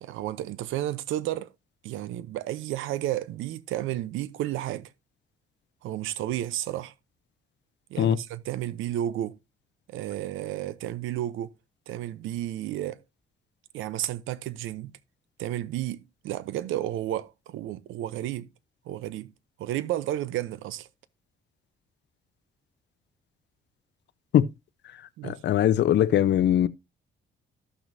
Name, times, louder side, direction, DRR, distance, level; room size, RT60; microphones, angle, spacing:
voice 1, 0.0-1.5 1.8-4.9 5.8-6.9 7.9-9.4 9.9-11.5 11.9-13.0 13.7-14.9 15.4-16.0 16.2-18.5 18.9-19.3 19.6-20.9 25.2-25.4, right 13 dB, 90° right, 0.7 m, -32 dB
voice 2, 25.2-26.7, left 11 dB, 60° left, 0.6 m, -21 dB
13.5 x 6.1 x 2.7 m
cardioid pair, 90°, 20 cm